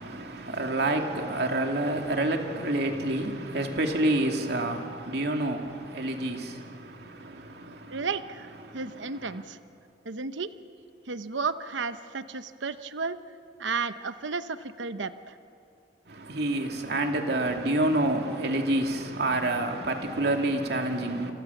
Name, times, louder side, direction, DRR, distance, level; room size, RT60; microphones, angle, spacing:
voice 1, 0.0-8.1 8.6-9.4 16.1-21.3, right 1 dB, 60° right, 2.8 m, -28 dB
voice 2, 7.9-9.6 10.0-10.5 11.1-13.2 13.6-15.4, right 4 dB, 90° right, 0.9 m, -33 dB
29.0 x 26.0 x 7.2 m
head